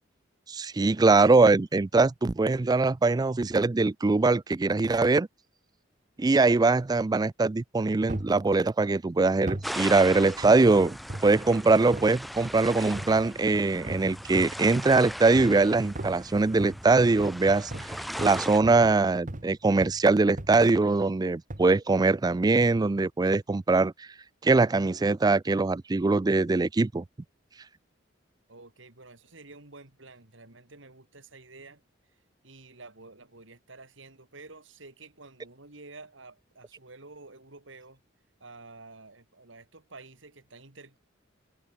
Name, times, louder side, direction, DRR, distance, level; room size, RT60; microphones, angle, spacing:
voice 1, 0.5-5.3 6.2-11.0 11.2-17.7 18.2-24.1 24.4-27.0, right 3 dB, 20° right, 0.4 m, -22 dB
sound 1, 8.1-8.4 9.5-9.8 10.4-11.4 11.9-12.2 12.9-13.3 13.9-14.7 15.4-15.6 15.9-19.5 19.8-20.1 20.4-20.8 21.5-21.7 22.6-22.9 23.5-23.6, right 1 dB, 40° right, 1.7 m, -38 dB
sound 2, 9.6-18.6, equal, ahead, 1.1 m, -39 dB
voice 2, 28.5-31.8 32.4-38.0 38.4-41.0, right 3 dB, 70° right, 3.2 m, -50 dB
head